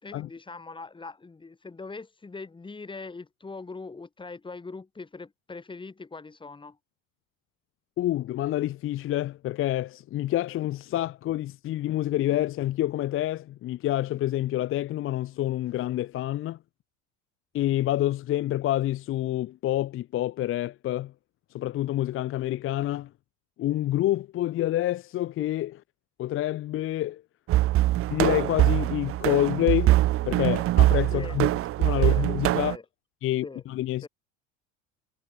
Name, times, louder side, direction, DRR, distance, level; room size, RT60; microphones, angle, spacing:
voice 1, 0.0-6.8 31.1-31.4 31.9-32.3 32.7-32.8 33.4-33.6 34.0-34.1, left 3 dB, 15° left, 4.8 m, -41 dB
voice 2, 8.0-16.6 17.5-21.1 21.5-23.1 23.6-25.8 26.2-27.2 28.1-30.0 30.2-31.5 31.8-32.7 33.2-34.1, left 14 dB, 40° left, 0.7 m, -27 dB
sound 1, 27.5-32.8, right 15 dB, 45° right, 0.7 m, -23 dB
supercardioid pair, 120°, 32 cm